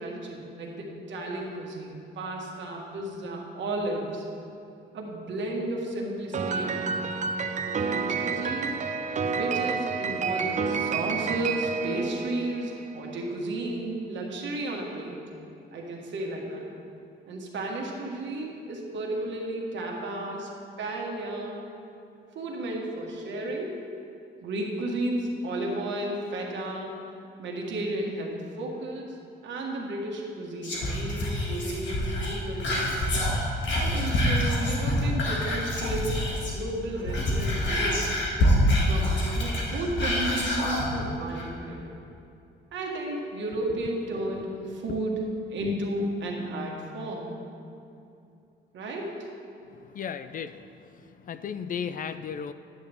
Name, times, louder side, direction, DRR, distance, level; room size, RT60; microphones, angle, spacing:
voice 1, 0.0-4.2 4.9-6.9 7.7-8.8 9.2-15.2 15.7-16.7 17.3-20.5 20.8-21.6 22.3-23.9 24.4-27.0 27.4-29.2 29.4-33.0 33.7-36.2 36.5-38.2 38.9-42.0 42.7-47.3 48.7-49.3, right 1 dB, 70° right, -1 dB, 1.6 m, -33 dB
Piano, 6.3-12.9, right 5 dB, 40° right, 0.6 m, -29 dB
Whispering, 30.6-36.6 36.9-40.9 41.3-41.4, left 1 dB, 65° left, 2.0 m, -26 dB
voice 2, 49.9-50.5 51.3-52.5, left 7 dB, 45° left, 12 dB, 0.4 m, -34 dB
10.5 x 8.3 x 3.5 m, 2.6 s
cardioid pair, 90°, 20 cm